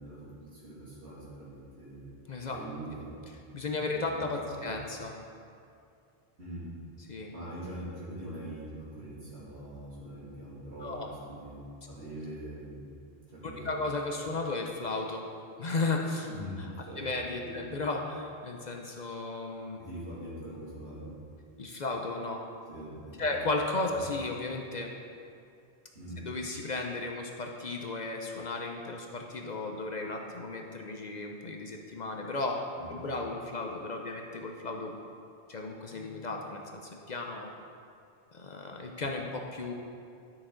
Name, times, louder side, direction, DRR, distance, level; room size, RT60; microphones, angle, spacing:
voice 1, 0.0-2.1 2.5-3.2 3.9-4.7 6.4-6.7 7.3-12.8 13.3-13.8 16.3-17.6 19.8-21.2 22.7-23.4 25.9-26.2 32.8-33.0, right 1 dB, 80° right, -8 dB, 2.8 m, -43 dB
voice 2, 3.5-5.2 7.1-7.3 10.8-11.1 13.6-15.3 15.6-16.3 16.6-16.7 17.0-19.8 21.6-22.4 23.2-24.9 26.2-32.6 32.9-34.9 35.5-37.5 38.3-39.7, left 3 dB, 50° left, 2 dB, 0.7 m, -34 dB
11.0 x 6.1 x 3.8 m, 2.4 s
omnidirectional pair, 1.1 m